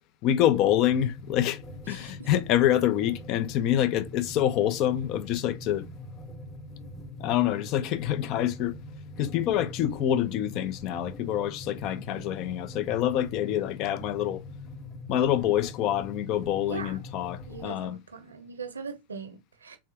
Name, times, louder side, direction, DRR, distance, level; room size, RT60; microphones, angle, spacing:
voice 1, 0.2-1.6 1.9-5.9 7.2-8.8 9.2-14.4 15.1-18.0, left 11 dB, 40° left, 0.4 m, -26 dB
sound 1, 0.5-17.7, left 1 dB, 20° left, 1.0 m, -43 dB
voice 2, 16.7-17.0 17.5-19.8, right 5 dB, 75° right, 0.8 m, -40 dB
3.6 x 3.2 x 2.8 m
figure-of-eight pair, 90°, 0 cm